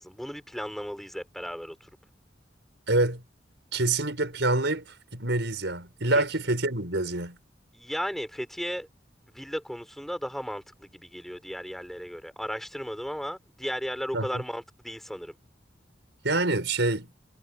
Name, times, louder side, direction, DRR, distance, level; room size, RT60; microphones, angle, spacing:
voice 1, 0.0-1.9 6.1-6.2 7.7-8.9 9.3-15.3, equal, ahead, 5.7 m, -35 dB
voice 2, 2.9-3.2 3.7-7.4 14.1-14.4 16.2-17.1, right 2 dB, 75° right, 5.3 m, -26 dB
head